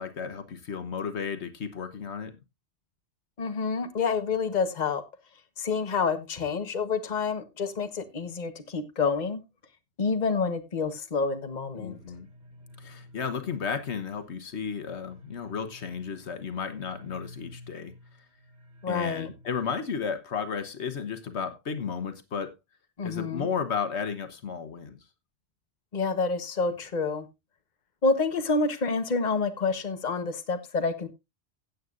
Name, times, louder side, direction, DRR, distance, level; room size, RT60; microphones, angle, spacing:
voice 1, 0.0-2.4 11.8-12.3 12.8-17.9 18.9-22.5 23.0-25.0, left 6 dB, 70° left, 1.3 m, -33 dB
voice 2, 3.4-5.0 5.6-9.4 10.0-12.0 18.8-19.3 23.0-23.5 25.9-27.3 28.0-31.1, left 4 dB, 40° left, 1.2 m, -28 dB
sound 1, 11.9-20.0, left 1 dB, 40° right, 1.2 m, -52 dB
16.5 x 8.0 x 2.5 m
omnidirectional pair, 1.2 m